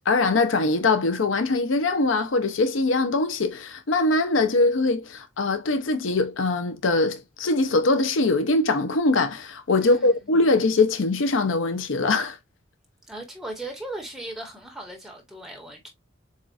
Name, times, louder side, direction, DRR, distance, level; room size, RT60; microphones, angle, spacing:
voice 1, 0.1-12.4, left 3 dB, 90° left, 0.7 m, -22 dB
voice 2, 9.8-10.3 13.1-15.9, right 1 dB, ahead, 1.3 m, -38 dB
7.3 x 2.4 x 2.5 m
head